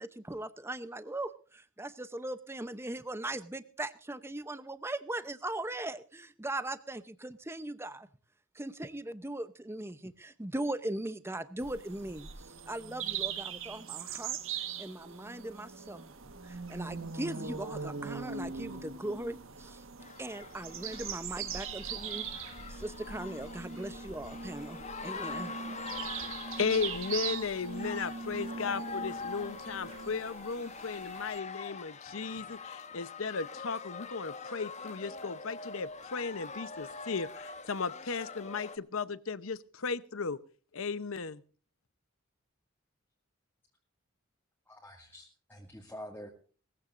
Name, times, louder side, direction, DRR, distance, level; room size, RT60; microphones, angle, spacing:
voice 1, 0.0-8.1 8.6-12.3 12.7-14.4 14.8-16.1 16.4-19.8 20.2-22.3 22.7-25.5, right 1 dB, 10° right, 13 dB, 0.7 m, -39 dB
sound 1, 11.6-31.4, right 6 dB, 70° right, 1.5 m, -41 dB
sound 2, 20.0-38.8, left 4 dB, 35° left, 1.0 m, -44 dB
voice 2, 26.6-40.4 40.7-41.4, left 5 dB, 75° left, 15 dB, 0.8 m, -35 dB
voice 3, 44.7-46.3, equal, 10° left, -3 dB, 2.1 m, -47 dB
20.5 x 15.5 x 2.6 m, 0.40 s
head